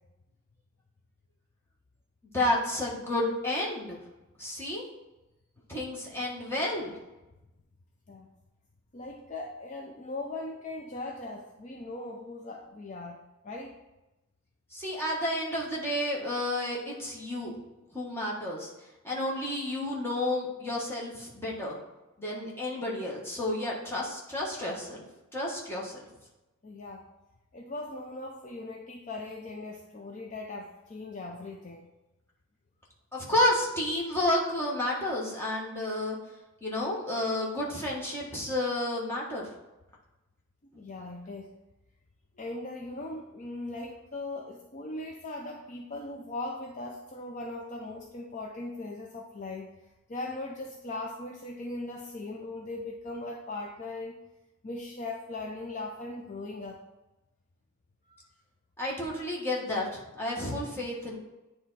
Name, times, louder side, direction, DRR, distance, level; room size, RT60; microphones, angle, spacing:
voice 1, 2.3-4.0 4.4-4.8 5.7-7.0 14.7-17.5 17.9-18.7 19.0-21.8 22.2-25.0 25.3-26.0 33.1-36.2 36.6-39.5 58.8-61.2, left 1 dB, 10° left, -4 dB, 1.4 m, -31 dB
voice 2, 8.9-13.8 26.6-27.1 27.5-31.9 40.8-41.5 42.4-49.7 50.1-54.2 54.6-56.8 58.1-58.2, left 2 dB, 35° left, 1 dB, 0.5 m, -39 dB
9.2 x 3.4 x 4.1 m, 1.0 s
head